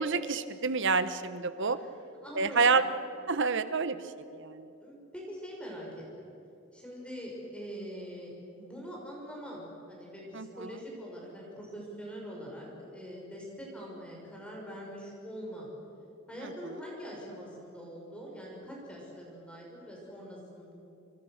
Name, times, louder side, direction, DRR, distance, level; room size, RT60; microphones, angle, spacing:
voice 1, 0.0-1.8 2.3-2.8 3.3-4.7 10.3-10.7 16.4-16.8, right 4 dB, 60° right, 12 dB, 1.3 m, -29 dB
voice 2, 2.2-2.8 4.8-6.3 6.7-15.7 16.3-20.7, equal, 5° left, -3 dB, 6.5 m, -43 dB
29.0 x 27.5 x 6.7 m, 2.8 s
head